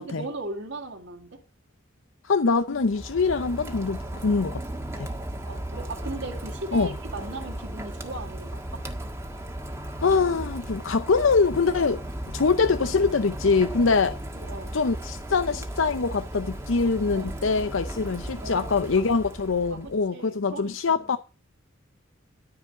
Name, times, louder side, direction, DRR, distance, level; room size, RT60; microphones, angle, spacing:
voice 1, 0.0-1.4 5.5-8.9 14.3-14.8 17.1-17.4 18.4-18.7 18.9-19.1 19.7-21.2, right 2 dB, 70° right, 2.2 m, -38 dB
voice 2, 2.2-4.6 5.0-5.1 6.7-6.9 10.0-12.0 12.3-14.2 14.7-21.2, left 4 dB, 90° left, 0.7 m, -24 dB
Rain, 2.7-20.0, right 1 dB, 15° right, 1.6 m, -36 dB
13.5 x 5.0 x 8.0 m
head